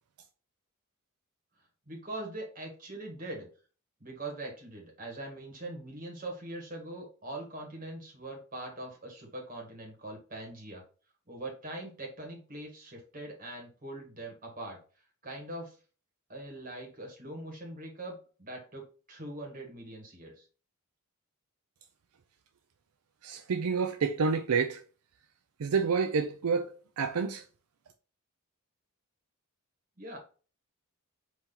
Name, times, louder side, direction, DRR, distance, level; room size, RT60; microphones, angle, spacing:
voice 1, 1.9-3.5 4.0-10.8 11.3-14.8 15.2-15.7 16.3-20.4 30.0-30.2, right 1 dB, 40° right, 1.6 m, -42 dB
voice 2, 23.2-24.8 25.6-27.4, right 5 dB, 80° right, 0.5 m, -29 dB
4.2 x 3.0 x 3.7 m
head